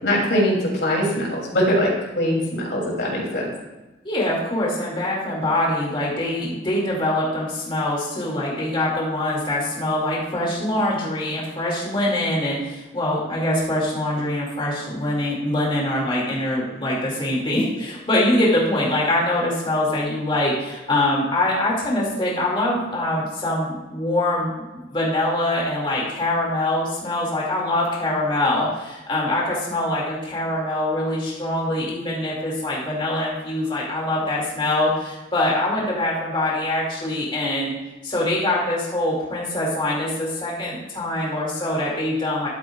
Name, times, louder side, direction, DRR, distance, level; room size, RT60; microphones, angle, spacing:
voice 1, 0.0-3.5, equal, 65° left, -3 dB, 3.1 m, -22 dB
voice 2, 4.0-37.7 38.0-42.5, left 1 dB, 25° left, -4 dB, 2.4 m, -24 dB
12.5 x 8.5 x 2.4 m, 1.1 s
head